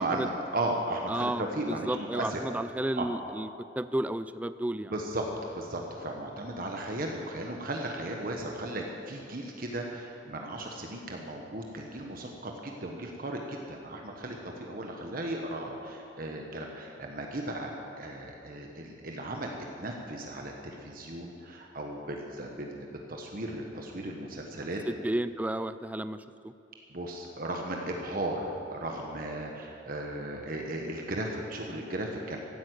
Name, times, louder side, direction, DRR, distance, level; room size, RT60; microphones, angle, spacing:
voice 1, 0.0-2.4 3.0-3.1 4.9-5.2 5.5-19.5 19.8-24.8 26.9-32.4, right 1 dB, 50° right, 1 dB, 1.3 m, -36 dB
voice 2, 1.1-3.5 3.8-4.9 24.9-26.5, right 1 dB, 10° right, 13 dB, 0.3 m, -32 dB
15.5 x 9.5 x 8.2 m, 2.8 s
head